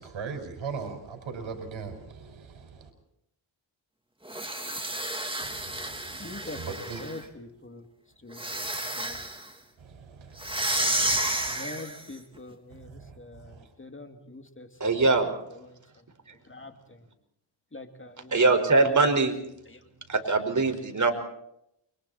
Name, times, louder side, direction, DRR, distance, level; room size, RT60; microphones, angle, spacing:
voice 1, 0.0-2.9 5.4-6.2 6.6-7.0 10.0-10.4 11.1-11.4, right 5 dB, 80° right, 6 dB, 5.5 m, -39 dB
sound 1, 4.3-7.2 8.3-9.5 10.4-12.1, right 1 dB, 10° right, 3.2 m, -31 dB
voice 2, 6.2-7.8 8.2-9.2 11.4-16.0 16.3-17.1 17.7-18.5 18.8-19.1 19.7-19.8, left 2 dB, 25° left, 6 dB, 2.8 m, -44 dB
voice 3, 14.8-15.3 18.3-19.3 20.1-21.1, right 3 dB, 40° right, 5 dB, 5.2 m, -22 dB
29.5 x 24.5 x 4.4 m, 0.78 s
cardioid pair, 70°, 46 cm